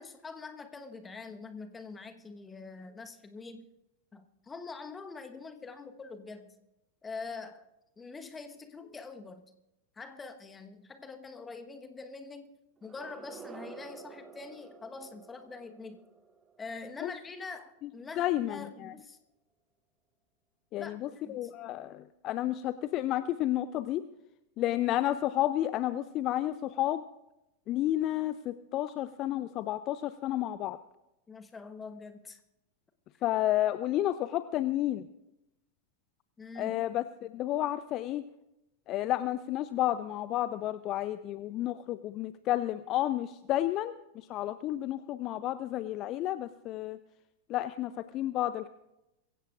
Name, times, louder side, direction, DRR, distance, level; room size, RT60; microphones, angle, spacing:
voice 1, 0.0-3.7 4.1-6.5 7.0-7.6 8.0-9.5 10.0-12.5 12.8-16.0 16.6-19.2 20.8-21.5 31.3-32.4 36.4-36.7, left 4 dB, 15° left, 8 dB, 1.2 m, -44 dB
sound 1, 12.8-17.7, right 6 dB, 20° right, 0.9 m, -51 dB
voice 2, 18.2-18.9 20.7-24.0 24.6-27.0 27.7-30.8 33.2-35.1 36.6-38.2 38.9-47.0 47.5-48.7, left 13 dB, 35° left, 14 dB, 0.5 m, -31 dB
23.0 x 15.5 x 2.5 m, 0.92 s
figure-of-eight pair, 90°, 0 cm